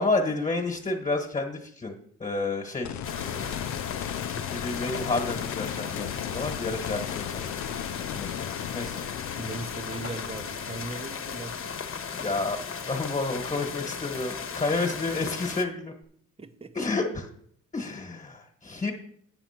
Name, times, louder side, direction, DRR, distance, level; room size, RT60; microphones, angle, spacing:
voice 1, 0.0-1.9 2.2-3.7 4.3-7.5 8.1-8.4 8.7-9.0 12.1-15.9 16.7-17.3 17.7-18.9, left 3 dB, 25° left, 2 dB, 1.5 m, -30 dB
sound 1, 2.8-13.8 16.0-16.1, left 10 dB, 70° left, 0.5 m, -37 dB
sound 2, 3.0-15.6, left 6 dB, 45° left, 1.1 m, -36 dB
voice 2, 9.4-11.8 16.4-16.9, right 3 dB, 20° right, 9 dB, 0.8 m, -40 dB
9.0 x 5.9 x 5.9 m, 0.68 s
cardioid pair, 90°, 30 cm